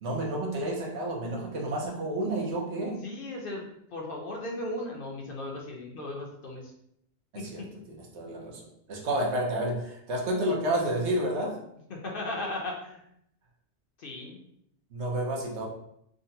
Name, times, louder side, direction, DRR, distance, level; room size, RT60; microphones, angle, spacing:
voice 1, 0.0-3.1 7.3-11.6 14.9-15.7, right 1 dB, 75° right, -1 dB, 1.0 m, -30 dB
voice 2, 3.0-6.7 7.3-7.7 11.9-13.0 14.0-14.4, left 2 dB, 60° left, -1 dB, 0.7 m, -37 dB
3.7 x 2.1 x 2.7 m, 0.74 s
omnidirectional pair, 1.2 m